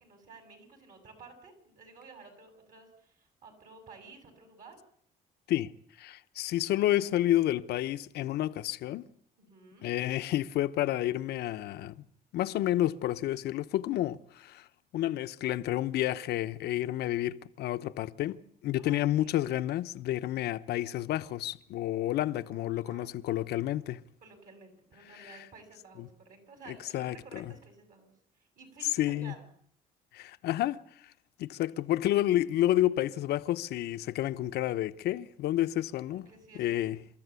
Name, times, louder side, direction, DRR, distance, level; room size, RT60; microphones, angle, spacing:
voice 1, 0.0-4.8 9.4-9.9 18.8-19.4 22.1-23.2 24.2-29.5 36.1-36.7, right 4 dB, 55° right, 6.8 m, -53 dB
voice 2, 5.5-9.1 9.8-12.1 12.3-14.7 14.9-24.0 25.2-25.4 26.0-26.1 26.7-27.4 29.0-29.4 30.1-30.8 31.4-36.3 36.5-37.0, left 14 dB, 75° left, 1.0 m, -30 dB
29.0 x 13.5 x 8.3 m
cardioid pair, 110°, 17 cm